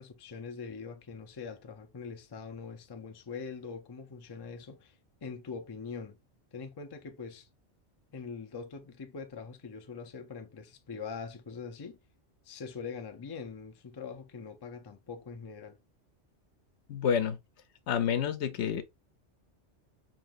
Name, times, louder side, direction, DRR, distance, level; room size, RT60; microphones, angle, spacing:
voice 1, 0.0-4.9 5.2-6.2 6.5-7.5 8.1-12.0 12.5-15.8, left 5 dB, 40° left, 0.3 m, -43 dB
voice 2, 16.9-17.4 17.9-18.8, left 8 dB, 75° left, 0.9 m, -29 dB
5.6 x 2.9 x 2.3 m
omnidirectional pair, 1.2 m